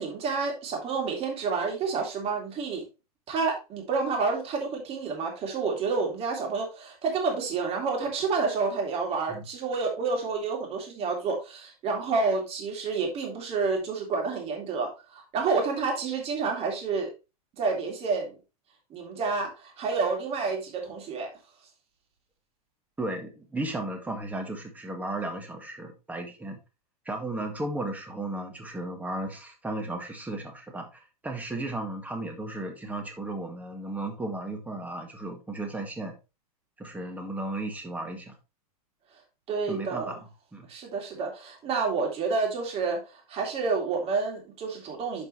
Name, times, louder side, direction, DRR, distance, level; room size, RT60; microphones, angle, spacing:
voice 1, 0.0-2.8 3.3-17.1 17.6-18.4 18.9-21.3 39.5-40.2 40.7-45.3, right 4 dB, 30° right, 1 dB, 3.5 m, -29 dB
voice 2, 23.0-26.6 27.1-36.1 36.8-38.4 39.7-40.2 40.5-40.7, right 2 dB, 10° right, 4 dB, 1.8 m, -35 dB
10.0 x 5.3 x 3.2 m, 0.28 s
hypercardioid pair, 130°, 20 cm